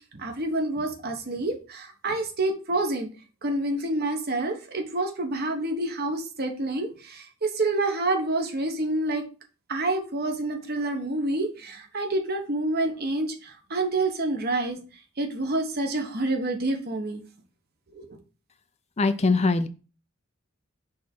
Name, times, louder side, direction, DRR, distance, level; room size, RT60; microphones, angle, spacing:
voice 1, 0.1-3.1 3.4-9.2 9.7-14.8 15.2-17.2 17.9-18.0, right 2 dB, 50° right, 4 dB, 1.1 m, -28 dB
voice 2, 19.0-19.7, left 3 dB, 30° left, 11 dB, 0.5 m, -22 dB
6.2 x 3.6 x 4.4 m, 0.34 s
head